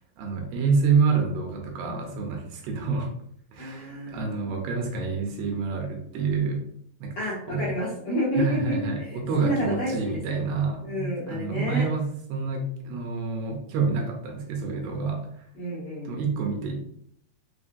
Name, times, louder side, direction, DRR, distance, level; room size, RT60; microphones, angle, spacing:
voice 1, 0.2-3.1 3.5-6.6 7.0-7.2 7.5-7.7 8.4-15.3 16.1-16.8, right 4 dB, 80° right, 2 dB, 2.6 m, -27 dB
voice 2, 3.6-4.5 7.2-9.9 10.3-10.4 10.8-11.9 15.5-16.1, equal, 75° left, -8 dB, 1.7 m, -30 dB
5.9 x 2.1 x 2.5 m, 0.68 s
omnidirectional pair, 4.5 m